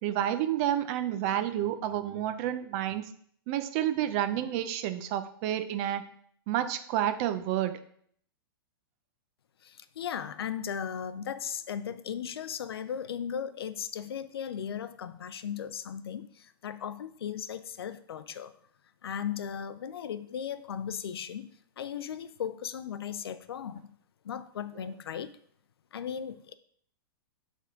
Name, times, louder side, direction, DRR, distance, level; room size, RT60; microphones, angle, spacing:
voice 1, 0.0-3.1 3.5-6.0 6.5-7.8 24.8-24.9, right 11 dB, 35° right, 11 dB, 0.5 m, -30 dB
voice 2, 9.6-18.5 19.0-21.5 21.8-23.9 24.2-25.3 25.9-26.5, left 8 dB, 90° left, 14 dB, 0.5 m, -37 dB
8.2 x 3.6 x 3.6 m, 0.62 s
hypercardioid pair, 145°, 13 cm